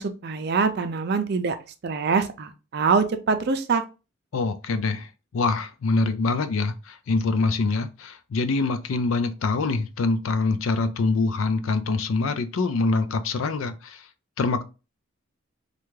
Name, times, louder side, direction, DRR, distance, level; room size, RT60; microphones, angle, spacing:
voice 1, 0.0-1.5 1.8-3.8, right 5 dB, 55° right, 0.4 m, -24 dB
voice 2, 4.3-5.1 5.3-14.0 14.4-14.6, left 3 dB, 75° left, 0.4 m, -24 dB
3.4 x 2.4 x 3.1 m
head